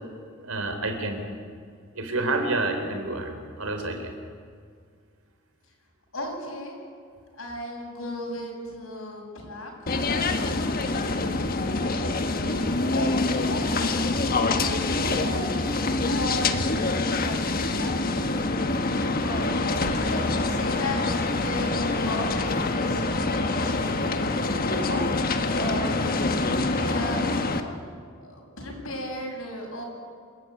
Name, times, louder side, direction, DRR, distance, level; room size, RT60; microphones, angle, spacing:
voice 1, 0.4-1.2 1.9-3.3 3.6-4.1, right 2 dB, 90° right, 5 dB, 4.1 m, -28 dB
voice 2, 6.1-6.8 7.3-11.0 11.7-18.6 19.1-24.1 24.6-25.1 25.5-27.7 28.2-29.8, left 1 dB, 80° left, -1 dB, 7.5 m, -36 dB
sound 1, 9.9-27.6, left 2 dB, 45° left, 1.4 m, -25 dB
28.0 x 15.0 x 9.5 m, 2.2 s
head